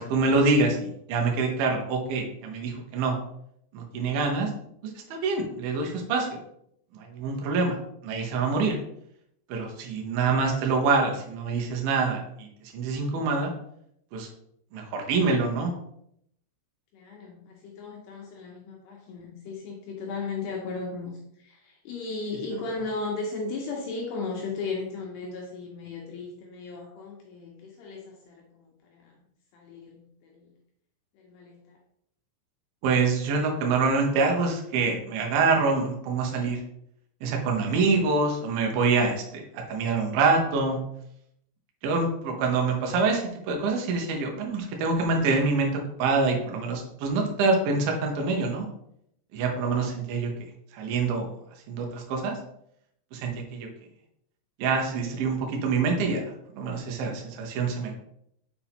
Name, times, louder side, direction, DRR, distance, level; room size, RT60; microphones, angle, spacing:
voice 1, 0.0-3.2 3.7-4.5 4.8-6.4 6.9-7.8 8.0-8.8 9.5-13.5 14.1-14.3 14.7-15.7 32.8-36.6 37.2-40.8 41.8-48.7 49.3-51.3 51.7-52.4 53.1-53.7 54.6-56.2 56.5-58.0, right 4 dB, 90° right, 2 dB, 2.0 m, -26 dB
voice 2, 16.9-29.1 29.5-30.5 31.2-31.8, left 3 dB, 75° left, 0 dB, 2.5 m, -36 dB
7.0 x 4.8 x 3.5 m, 0.74 s
omnidirectional pair, 5.7 m